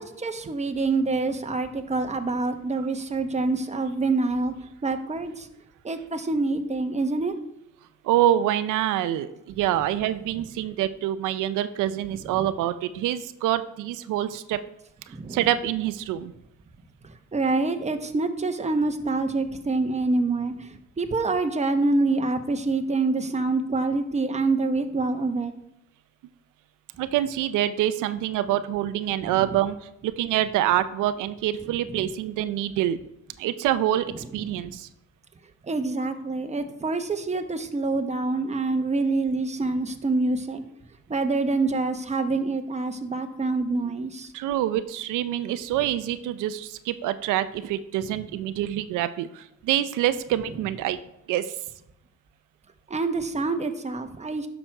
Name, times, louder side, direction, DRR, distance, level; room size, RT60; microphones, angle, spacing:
voice 1, 0.0-4.5 4.8-5.5 5.8-7.3 12.1-12.5 15.1-15.5 17.0-25.5 29.2-29.4 31.9-32.1 34.4-34.7 35.6-40.6 41.1-44.3 52.9-54.5, right 3 dB, 20° right, 6 dB, 1.0 m, -26 dB
voice 2, 8.0-14.6 15.3-16.3 27.0-33.0 33.4-34.9 44.3-51.0 51.3-51.5, right 12 dB, 90° right, 12 dB, 0.5 m, -26 dB
9.9 x 6.2 x 4.5 m, 0.83 s
cardioid pair, 90°, 30 cm